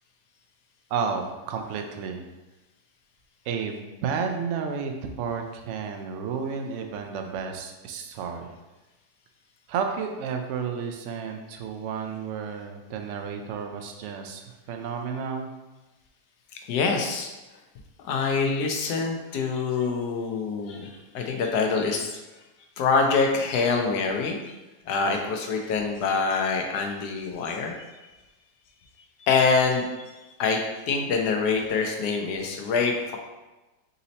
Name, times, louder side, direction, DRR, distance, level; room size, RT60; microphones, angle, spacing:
voice 1, 0.9-2.3 3.5-8.6 9.7-15.5, right 6 dB, 75° right, 4 dB, 0.6 m, -32 dB
voice 2, 16.5-17.3 18.0-22.2 22.8-24.5 24.9-27.9 29.3-30.1 30.4-30.6 30.9-33.2, left 4 dB, 75° left, 2 dB, 1.2 m, -25 dB
4.1 x 2.7 x 4.0 m, 1.1 s
omnidirectional pair, 1.8 m